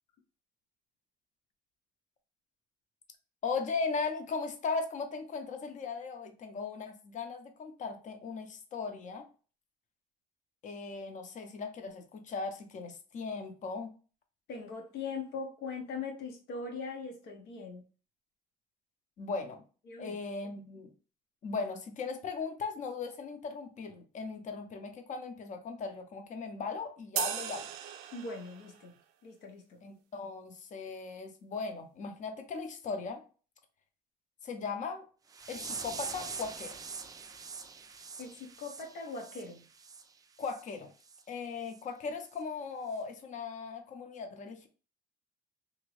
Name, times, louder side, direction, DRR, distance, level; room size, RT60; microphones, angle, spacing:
voice 1, 3.4-9.3 10.6-13.9 19.2-19.6 20.0-20.9 21.4-27.7 29.8-33.2 34.4-35.0 35.5-36.8 40.4-40.9 41.3-44.7, left 4 dB, 45° left, 0.7 m, -38 dB
voice 2, 14.5-17.8 19.9-20.1 28.1-28.9 29.2-29.8 38.2-39.6, left 4 dB, 85° left, 0.8 m, -41 dB
sound 1, 27.2-28.8, right 11 dB, 90° right, 0.4 m, -37 dB
sound 2, 35.3-40.0 40.4-40.6 41.1-41.2 41.7-41.8 42.3-42.4, right 5 dB, 20° right, 0.3 m, -44 dB
2.9 x 2.6 x 3.1 m
cardioid pair, 110°, 17 cm